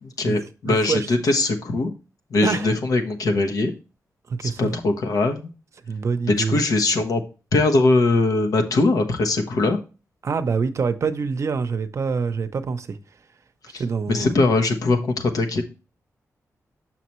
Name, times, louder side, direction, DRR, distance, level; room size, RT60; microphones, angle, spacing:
voice 1, 0.0-1.9 2.3-3.7 4.4-5.5 6.3-7.2 7.5-9.8 13.7-13.8 14.1-15.6, left 2 dB, 85° left, 1.0 m, -21 dB
voice 2, 0.7-1.1 2.4-2.7 4.3-4.8 5.8-6.6 10.2-13.0 13.8-14.3, right 5 dB, 55° right, 0.7 m, -25 dB
7.0 x 5.9 x 3.1 m
wide cardioid pair, 120°, 6 cm